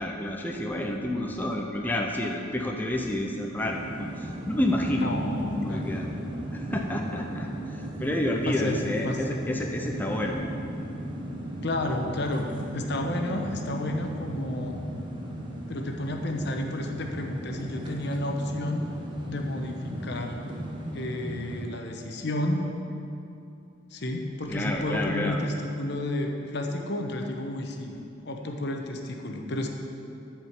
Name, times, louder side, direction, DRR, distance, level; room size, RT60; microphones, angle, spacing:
voice 1, 0.0-5.2 5.5-6.1 6.5-10.5 24.5-25.4, left 1 dB, 10° left, 0 dB, 0.6 m, -29 dB
sound 1, 3.6-21.7, equal, 25° right, 1.2 m, -36 dB
voice 2, 5.0-5.9 8.5-9.2 11.6-14.9 15.7-18.9 19.3-20.4 20.9-22.7 23.9-28.0 28.2-29.7, left 1 dB, 60° left, 2 dB, 1.0 m, -31 dB
11.0 x 4.9 x 7.2 m, 2.6 s
head